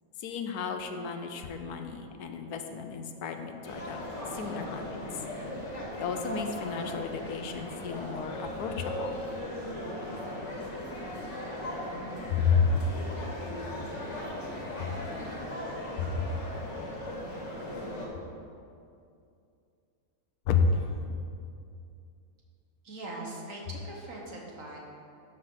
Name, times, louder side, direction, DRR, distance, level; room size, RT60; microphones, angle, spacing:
voice 1, 0.2-4.0 4.3-5.0 6.0-9.1 12.3-12.8 16.0-16.3 20.5-20.9, left 5 dB, 80° left, 6 dB, 1.2 m, -31 dB
sound 1, 3.6-18.1, left 1 dB, 50° left, 1.8 m, -38 dB
voice 2, 22.8-24.8, right 2 dB, 60° right, -2 dB, 1.7 m, -41 dB
12.0 x 6.2 x 3.9 m, 2.5 s
omnidirectional pair, 1.6 m